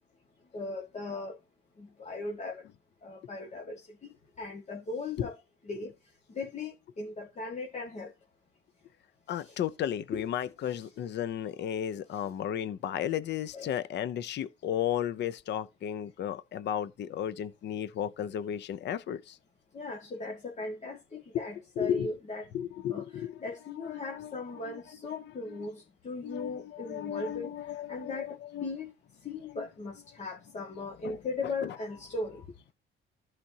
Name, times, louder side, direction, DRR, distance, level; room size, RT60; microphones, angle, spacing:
voice 1, 0.5-1.4 1.8-2.6 3.0-5.4 5.7-5.9 6.3-8.1 9.4-9.6 10.1-10.2 10.8-10.9 12.1-12.3 13.5-13.8 19.7-22.5 22.9-28.9 29.2-32.5, left 3 dB, 35° left, 1.9 m, -38 dB
voice 2, 9.3-19.4 21.3-21.5 21.8-22.1 22.5-23.4 23.8-24.8 25.5-25.7 26.2-28.7 29.5-29.6 31.0-31.2 31.6-31.8, left 10 dB, 55° left, 0.7 m, -34 dB
14.5 x 5.1 x 2.8 m
cardioid pair, 120°, 21 cm